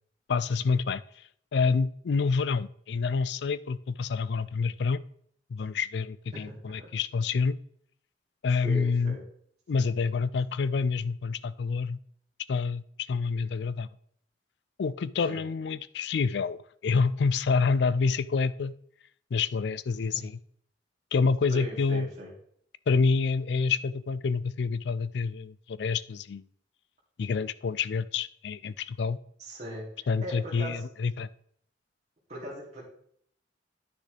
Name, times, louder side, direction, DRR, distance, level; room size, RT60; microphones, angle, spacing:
voice 1, 0.3-1.0 1.5-5.0 5.5-7.6 8.4-9.2 9.7-12.0 12.5-12.8 13.1-13.9 14.8-18.7 19.3-20.4 21.1-22.1 22.9-26.4 27.2-29.2 30.1-31.3, left 4 dB, 65° left, 17 dB, 0.4 m, -27 dB
voice 2, 6.3-6.9 8.6-9.2 15.3-15.4 20.1-20.3 21.5-22.3 29.4-29.8 30.2-30.8 32.3-32.8, equal, 40° right, -6 dB, 2.8 m, -39 dB
9.9 x 6.5 x 3.3 m, 0.65 s
head